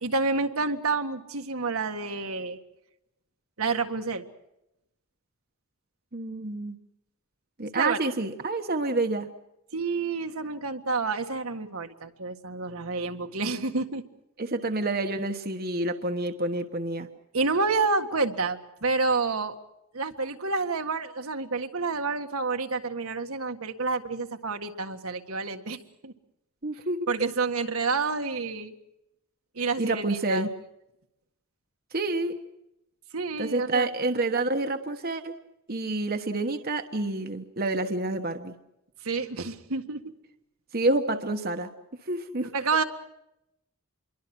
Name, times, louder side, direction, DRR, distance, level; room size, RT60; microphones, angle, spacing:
voice 1, 0.0-2.6 3.6-4.2 7.8-8.0 9.7-14.0 17.3-19.6 19.9-26.1 27.1-28.7 29.6-30.5 33.1-33.9 39.0-40.0 42.5-42.8, right 4 dB, 75° right, 5 dB, 1.8 m, -29 dB
voice 2, 6.1-6.8 7.6-9.3 14.4-17.1 26.6-27.3 29.8-30.5 31.9-32.4 33.4-35.3 35.7-38.5 40.7-41.7 42.0-42.5, right 2 dB, 45° right, 6 dB, 1.2 m, -28 dB
27.0 x 23.0 x 6.2 m, 0.86 s
head